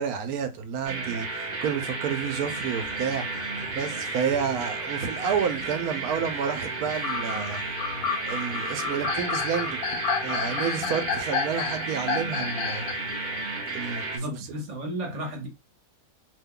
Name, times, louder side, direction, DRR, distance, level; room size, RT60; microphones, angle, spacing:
voice 1, 0.0-3.3 3.7-7.6 8.2-12.9 13.7-14.5, right 7 dB, 90° right, 1.1 m, -30 dB
sound 1, 0.8-14.2, right 3 dB, 40° right, 0.8 m, -33 dB
sound 2, 2.2-4.5 5.0-6.2 6.8-13.1, left 6 dB, 80° left, 1.1 m, -31 dB
voice 2, 14.1-15.5, equal, 55° right, 1.2 m, -33 dB
2.9 x 2.2 x 3.5 m
omnidirectional pair, 1.5 m